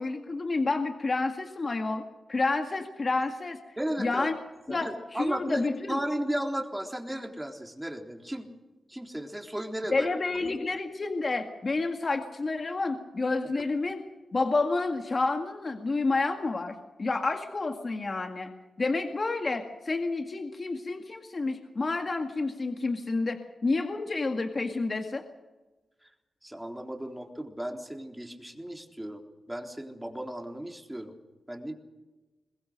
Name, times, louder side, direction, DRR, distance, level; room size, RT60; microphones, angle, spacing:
voice 1, 0.0-3.6 4.0-4.4 4.7-6.0 9.9-14.0 14.3-18.5 18.8-25.2, left 3 dB, 45° left, 5 dB, 2.0 m, -29 dB
voice 2, 3.8-4.3 4.7-8.5 8.9-10.1 10.4-10.5 26.4-29.2 29.5-31.1 31.5-31.7, right 1 dB, 10° right, 3 dB, 3.7 m, -35 dB
23.5 x 20.5 x 6.5 m, 1.1 s
cardioid pair, 50°, 0 cm